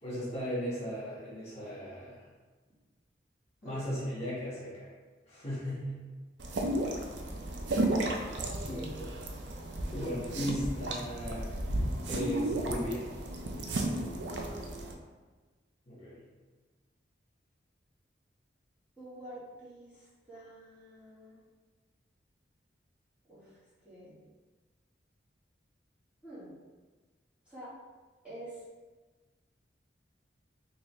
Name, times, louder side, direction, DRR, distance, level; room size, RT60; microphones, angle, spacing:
voice 1, 0.0-2.2 3.6-4.9 5.3-6.0 8.7-8.8 9.9-11.5 12.0-13.1 15.9-16.2, equal, 35° left, -8 dB, 1.3 m, -36 dB
sound 1, 6.4-14.9, right 1 dB, 75° right, 0.4 m, -34 dB
voice 2, 8.4-8.9 14.2-14.6 19.0-21.4 23.3-23.6 23.8-24.2 26.2-26.5 27.5-27.7 28.2-28.6, right 1 dB, 5° right, -12 dB, 1.2 m, -47 dB
3.9 x 2.7 x 3.1 m, 1.3 s
head